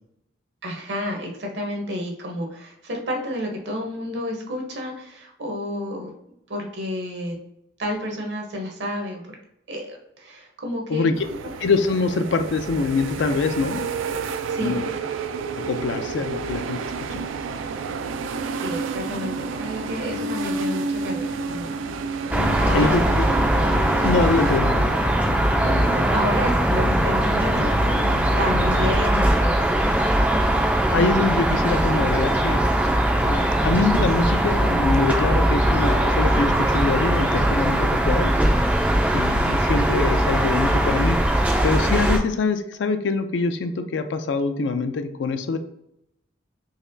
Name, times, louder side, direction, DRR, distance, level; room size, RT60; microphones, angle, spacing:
voice 1, 0.6-6.1 6.5-7.4 7.8-9.3 9.7-11.1 14.4-14.7 18.5-21.8 22.1-23.1 25.6-27.7 28.0-29.7, left 1 dB, 65° right, 1 dB, 0.9 m, -30 dB
sound 1, 11.1-24.6, right 4 dB, 85° right, 0.3 m, -30 dB
voice 2, 11.6-13.9 14.6-14.9 15.7-16.8 17.1-17.2 22.7-23.3 24.0-24.7 30.9-32.7 33.2-38.3 39.1-45.6, left 4 dB, 70° left, 8 dB, 0.4 m, -24 dB
sound 2, 22.3-29.0, left 2 dB, 85° left, 1.2 m, -32 dB
sound 3, 22.3-42.2, right 1 dB, 10° right, 0.3 m, -20 dB
4.1 x 2.9 x 2.6 m, 0.80 s
head